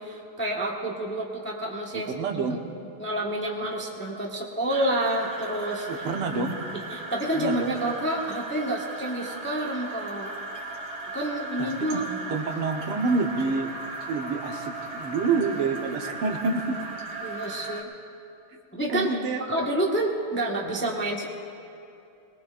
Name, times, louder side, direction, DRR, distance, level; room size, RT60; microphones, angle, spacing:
voice 1, 0.0-2.1 2.4-2.6 3.0-5.9 6.7-10.3 11.1-12.1 17.2-17.9 18.7-19.2 19.5-21.3, right 1 dB, 5° left, -2 dB, 0.9 m, -29 dB
voice 2, 1.9-2.6 3.6-3.7 5.9-6.6 7.3-7.8 11.6-12.0 12.3-13.7 14.1-16.8 18.9-19.4, right 4 dB, 90° right, 2 dB, 2.1 m, -28 dB
sound 1, 4.7-17.8, right 2 dB, 30° right, 1.8 m, -37 dB
23.0 x 20.5 x 2.5 m, 2.7 s
omnidirectional pair, 2.4 m